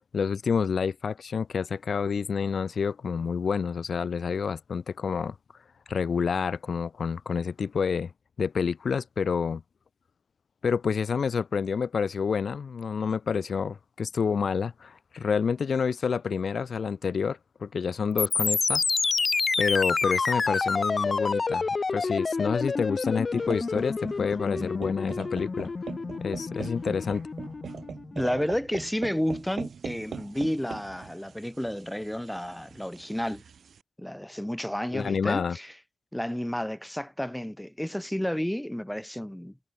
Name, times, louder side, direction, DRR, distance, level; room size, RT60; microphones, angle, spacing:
voice 1, 0.1-5.3 5.9-8.1 8.4-9.6 10.6-18.8 19.6-25.7 26.2-27.3 34.9-35.6, left 6 dB, 65° left, 3.0 m, -28 dB
sound 1, 18.2-28.2, left 4 dB, 40° left, 1.1 m, -28 dB
sound 2, 23.3-33.8, right 6 dB, 85° right, 5.7 m, -41 dB
voice 2, 28.1-33.4 34.0-35.8 36.1-39.5, equal, 5° left, 4.3 m, -31 dB
wide cardioid pair, 175°, 0 cm